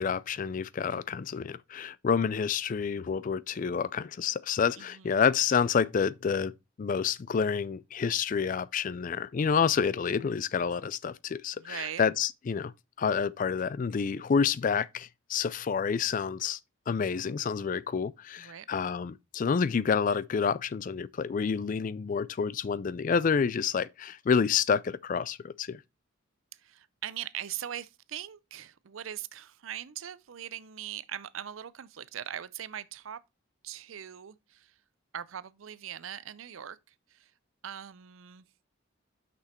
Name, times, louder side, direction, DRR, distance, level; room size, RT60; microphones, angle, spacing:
voice 1, 0.0-6.5 6.8-12.7 13.0-16.6 16.9-25.8, left 6 dB, 40° left, 0.3 m, -28 dB
voice 2, 4.8-5.2 11.5-12.0 18.4-18.7 26.6-33.2 33.6-34.7 35.1-37.3 37.6-38.5, right 10 dB, 80° right, 0.5 m, -41 dB
6.1 x 5.9 x 4.3 m
head